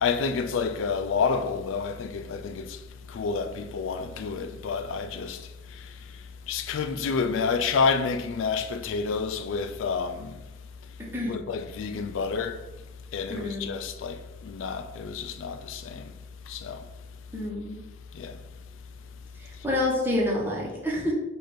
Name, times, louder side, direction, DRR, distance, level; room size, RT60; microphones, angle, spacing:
voice 1, 0.0-2.8 3.1-10.4 11.3-12.6 13.1-16.1 16.5-16.8 18.1-18.4, left 5 dB, 75° left, 0.3 m, -29 dB
voice 2, 13.3-13.6 17.3-17.8 19.4-21.1, left 1 dB, 10° right, 1.0 m, -28 dB
4.8 x 2.5 x 4.4 m
head